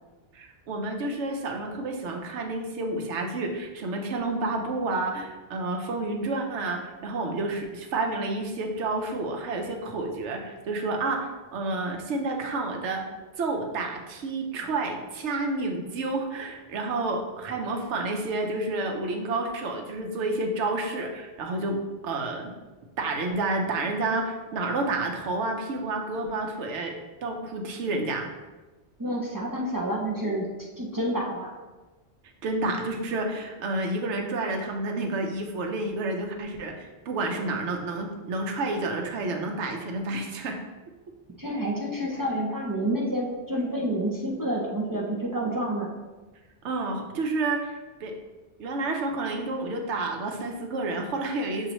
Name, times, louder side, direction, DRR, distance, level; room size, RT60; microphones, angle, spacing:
voice 1, 0.3-13.1 13.4-21.8 22.0-22.5 23.0-27.0 27.2-28.3 32.4-40.6 46.6-48.1 48.6-51.7, right 2 dB, 85° right, 2 dB, 1.0 m, -30 dB
voice 2, 29.0-30.5 30.8-31.5 41.4-45.9, right 1 dB, 35° right, -4 dB, 0.3 m, -29 dB
6.2 x 2.7 x 2.9 m, 1.2 s
omnidirectional pair, 1.2 m